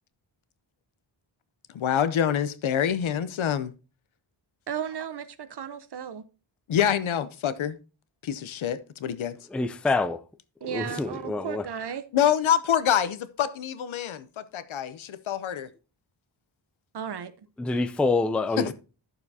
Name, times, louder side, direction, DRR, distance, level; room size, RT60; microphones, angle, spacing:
voice 1, 1.7-3.7 6.7-7.7 8.2-9.4 12.1-15.7 18.6-18.7, left 9 dB, 90° left, 0.8 m, -26 dB
voice 2, 4.7-6.2 10.6-12.0 16.9-17.3, right 8 dB, 55° right, 0.8 m, -34 dB
voice 3, 9.5-10.2 10.7-11.7 17.6-18.7, left 3 dB, 5° left, 0.3 m, -26 dB
12.0 x 6.8 x 2.7 m
wide cardioid pair, 155°, 46 cm